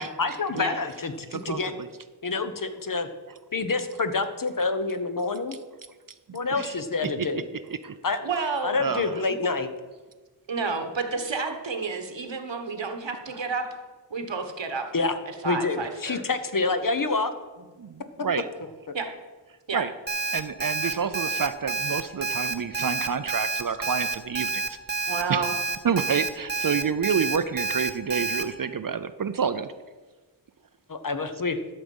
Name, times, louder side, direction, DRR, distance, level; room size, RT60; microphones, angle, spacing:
voice 1, 0.2-1.7 2.2-3.1 3.5-5.6 6.3-7.4 8.0-8.2 8.6-9.7 14.9-15.1 15.4-17.3 30.9-31.6, left 3 dB, 50° left, 9 dB, 0.9 m, -27 dB
voice 2, 1.3-1.9 6.3-6.8 7.7-7.9 8.8-9.1 17.8-18.4 19.7-19.9 20.3-24.8 25.3-25.5 25.8-29.7, right 6 dB, 50° right, 11 dB, 0.5 m, -28 dB
voice 3, 8.2-8.7 10.5-13.6 14.1-14.8 15.3-16.2 18.9-19.1 19.7-19.8 25.1-25.5, right 4 dB, 85° right, 6 dB, 1.3 m, -30 dB
Alarm, 20.1-28.4, right 3 dB, 25° right, 0.9 m, -28 dB
12.0 x 6.4 x 5.4 m, 1.3 s
wide cardioid pair, 70°, 43 cm